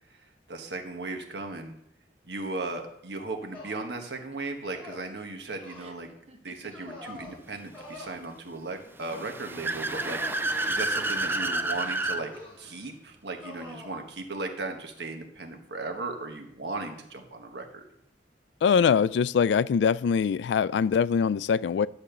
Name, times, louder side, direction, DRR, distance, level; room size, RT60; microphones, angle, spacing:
voice 1, 0.1-1.7 2.2-6.1 6.4-10.2 10.7-12.3 12.6-17.8, right 3 dB, 70° right, 1.3 m, -36 dB
sound 1, 3.5-3.9 4.7-5.1 5.6-5.9 6.7-7.4 7.7-8.1 9.0-9.3 10.0-10.4 11.2-11.9 12.3-12.7 13.4-13.9, left 2 dB, 10° left, 3.5 m, -45 dB
sound 2, 4.0-7.6 7.9-8.5 9.6-10.9 11.8-12.4, right 1 dB, 35° right, 1.0 m, -52 dB
Car / Accelerating revving vroom, 9.0-12.2, right 2 dB, 10° right, 0.4 m, -29 dB
voice 2, 18.6-21.9, left 6 dB, 75° left, 0.3 m, -23 dB
10.5 x 4.3 x 6.7 m
head